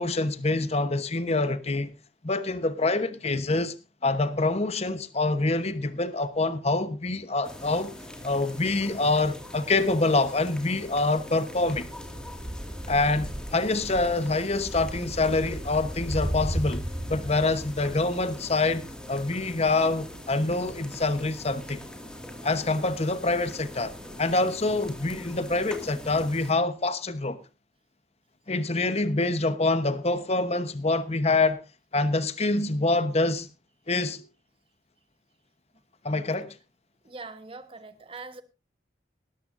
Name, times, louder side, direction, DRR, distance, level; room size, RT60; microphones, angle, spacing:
voice 1, 0.0-1.9 2.2-3.7 4.0-8.0 8.2-11.9 12.9-21.8 22.4-23.9 24.2-27.4 28.5-31.6 31.9-33.5 33.9-34.2 36.0-36.5, left 2 dB, 35° left, 1.0 m, -26 dB
sound 1, 7.4-26.5, equal, 5° left, 2.1 m, -38 dB
voice 2, 37.0-38.4, right 3 dB, 30° right, 1.1 m, -43 dB
18.5 x 13.5 x 2.6 m
head